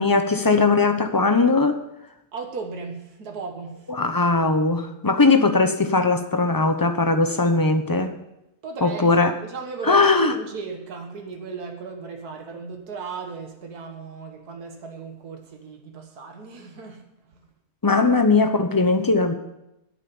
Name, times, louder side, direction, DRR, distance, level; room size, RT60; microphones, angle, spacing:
voice 1, 0.0-1.8 3.9-8.1 8.8-9.3 9.8-10.3 17.8-19.3, left 3 dB, 20° left, 7 dB, 0.7 m, -19 dB
voice 2, 2.3-3.9 8.6-17.5, right 4 dB, 85° right, 3 dB, 2.0 m, -36 dB
11.0 x 8.9 x 7.1 m, 0.87 s
omnidirectional pair, 1.6 m